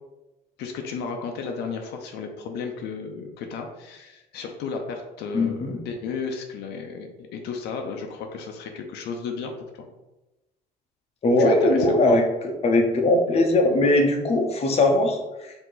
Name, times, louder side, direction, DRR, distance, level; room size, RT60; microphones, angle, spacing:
voice 1, 0.6-9.5 9.8-9.9 11.4-12.2, left 5 dB, 80° left, 3 dB, 0.6 m, -33 dB
voice 2, 5.3-5.8 11.2-12.2 12.6-15.5, left 2 dB, 40° left, 3 dB, 0.8 m, -20 dB
4.6 x 2.9 x 3.9 m, 1.0 s
cardioid pair, 110°, 17 cm